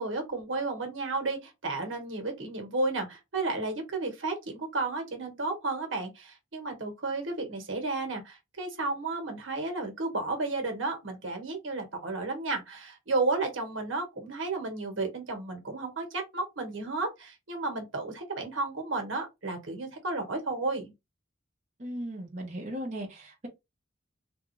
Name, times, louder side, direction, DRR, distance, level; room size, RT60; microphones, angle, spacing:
voice 1, 0.0-20.9, right 3 dB, 85° right, 1.3 m, -32 dB
voice 2, 21.8-23.5, equal, 35° right, 0.9 m, -37 dB
3.6 x 2.4 x 3.1 m
head